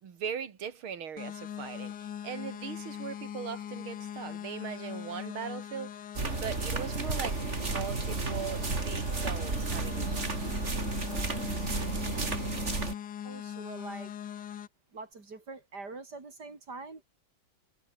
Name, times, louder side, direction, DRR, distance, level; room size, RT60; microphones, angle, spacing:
voice 1, 0.0-6.0 6.3-10.5, right 7 dB, 85° right, 2.8 m, -40 dB
sound 1, 1.2-14.7, left 9 dB, 60° left, 1.7 m, -41 dB
sound 2, 6.2-12.9, right 3 dB, 35° right, 3.2 m, -32 dB
voice 2, 13.2-14.1 14.9-17.0, right 3 dB, 50° right, 4.3 m, -44 dB
omnidirectional pair, 2.2 m